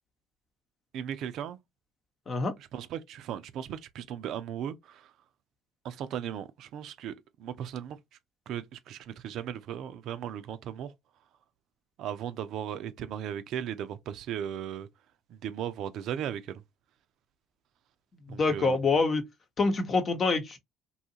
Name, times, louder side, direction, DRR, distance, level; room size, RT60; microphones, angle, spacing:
voice 1, 0.9-1.6 2.7-5.1 5.8-7.1 7.4-8.0 8.5-10.9 12.0-14.9 15.3-16.6 18.3-18.8, right 9 dB, 65° right, 0.4 m, -37 dB
voice 2, 18.3-19.2 19.6-20.6, left 3 dB, 40° left, 0.9 m, -26 dB
2.7 x 2.4 x 2.7 m
hypercardioid pair, 65°, 0 cm